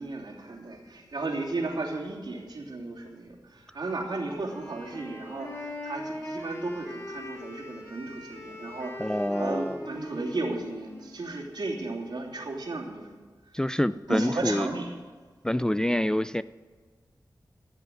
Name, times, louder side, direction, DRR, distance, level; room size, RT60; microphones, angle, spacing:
voice 1, 0.0-13.1 13.5-13.6 14.1-14.9 15.8-16.0, right 2 dB, 75° right, -1 dB, 3.0 m, -34 dB
Wind instrument woodwind instrument, 4.4-12.3, left 1 dB, 35° left, 4.4 m, -41 dB
voice 2, 9.0-9.8 13.5-14.7 15.4-16.4, left 1 dB, 10° left, 13 dB, 0.3 m, -26 dB
14.5 x 7.8 x 7.7 m, 1.5 s
wide cardioid pair, 90°, 8 cm